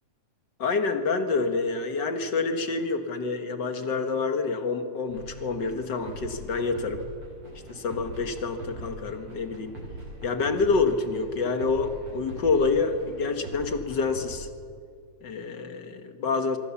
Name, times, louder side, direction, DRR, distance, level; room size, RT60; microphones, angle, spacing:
voice 1, 0.6-7.0 7.7-9.7 10.2-14.5 15.2-16.6, left 4 dB, 50° left, 7 dB, 1.4 m, -27 dB
sound 1, 5.1-14.3, right 1 dB, 45° right, 8.7 m, -42 dB
25.5 x 24.0 x 7.2 m, 2.2 s
omnidirectional pair, 3.9 m